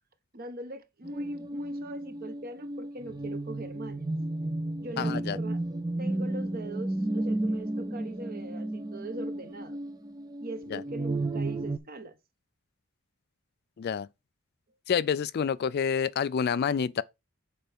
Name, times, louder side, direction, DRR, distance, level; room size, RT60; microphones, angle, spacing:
voice 1, 0.3-4.0 4.8-5.6 6.0-9.8 10.4-12.2, right 2 dB, 45° right, 1.1 m, -41 dB
sound 1, 1.0-11.8, right 1 dB, 15° right, 0.5 m, -33 dB
voice 2, 5.0-5.4 10.7-10.8 13.8-14.1 14.9-17.0, left 7 dB, 45° left, 0.3 m, -28 dB
6.7 x 4.5 x 5.1 m
head